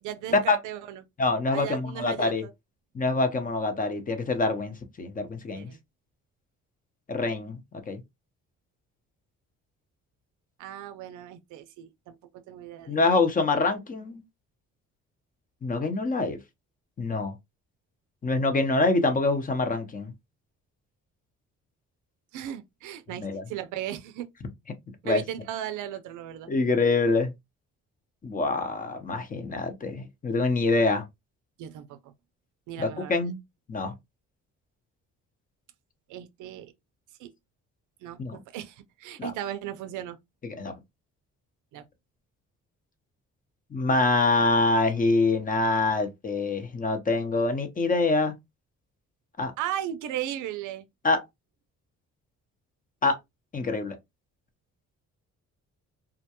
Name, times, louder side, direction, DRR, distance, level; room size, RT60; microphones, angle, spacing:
voice 1, 0.0-1.0 1.5-2.5 5.5-5.8 10.6-12.2 12.5-13.0 22.3-24.3 25.0-26.5 31.6-32.1 32.7-33.3 36.1-36.7 37.2-37.3 38.0-40.2 41.7-41.8 49.6-50.8, right 11 dB, 85° right, 0.5 m, -36 dB
voice 2, 1.2-2.4 2.9-5.7 7.1-8.0 12.9-14.2 15.6-16.4 17.0-17.3 18.2-20.1 23.2-23.4 25.0-25.2 26.5-27.3 28.2-31.0 32.8-33.4 33.7-33.9 38.2-38.4 39.2-39.3 40.4-40.7 43.7-48.3 49.4-49.5 51.0-51.2 53.0-53.2 53.5-54.0, left 3 dB, 25° left, 0.7 m, -25 dB
2.3 x 2.2 x 2.8 m
cardioid pair, 90°, 30 cm